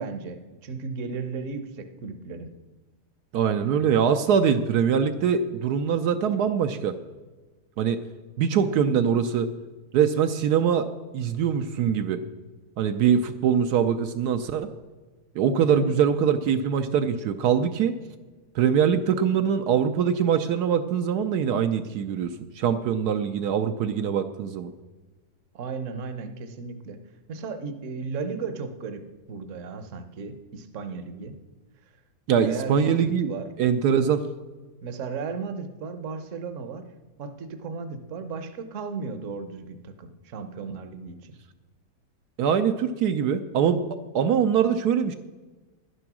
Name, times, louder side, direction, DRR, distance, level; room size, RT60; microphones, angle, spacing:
voice 1, 0.0-2.5 15.7-15.9 25.5-27.0 27.3-31.4 32.3-33.5 34.8-36.8 37.2-41.4, right 4 dB, 55° right, 10 dB, 1.2 m, -35 dB
voice 2, 3.3-7.0 7.8-8.0 8.4-9.5 9.9-10.9 11.1-12.2 12.8-14.7 15.4-18.0 18.5-24.7 32.3-33.3 33.6-34.2 42.4-43.8 44.1-45.1, right 7 dB, 75° right, 8 dB, 1.2 m, -23 dB
11.5 x 9.8 x 6.1 m, 1.2 s
omnidirectional pair, 1.7 m